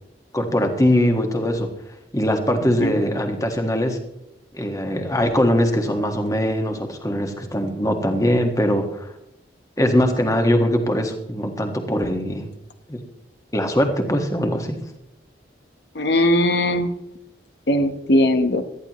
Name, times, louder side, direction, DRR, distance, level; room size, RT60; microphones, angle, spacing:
voice 1, 0.3-1.7 2.1-4.0 4.5-9.1 9.8-12.5 12.9-13.0 13.5-14.8, equal, 20° left, 4 dB, 1.6 m, -21 dB
voice 2, 15.9-16.9 17.7-18.6, left 1 dB, 70° left, 7 dB, 1.1 m, -19 dB
18.5 x 13.5 x 3.1 m, 0.81 s
head